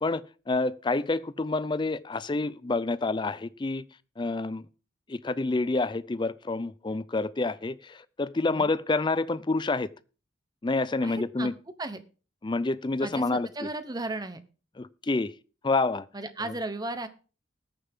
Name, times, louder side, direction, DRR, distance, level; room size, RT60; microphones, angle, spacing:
voice 1, 0.0-3.8 4.2-4.7 5.1-9.9 10.6-11.5 12.4-13.7 14.8-15.3 15.6-16.1 16.4-16.5, left 3 dB, 25° left, 0.5 m, -28 dB
voice 2, 11.0-11.5 11.8-12.0 13.0-14.4 16.1-17.1, right 2 dB, 20° right, 0.9 m, -35 dB
20.0 x 6.8 x 3.6 m
head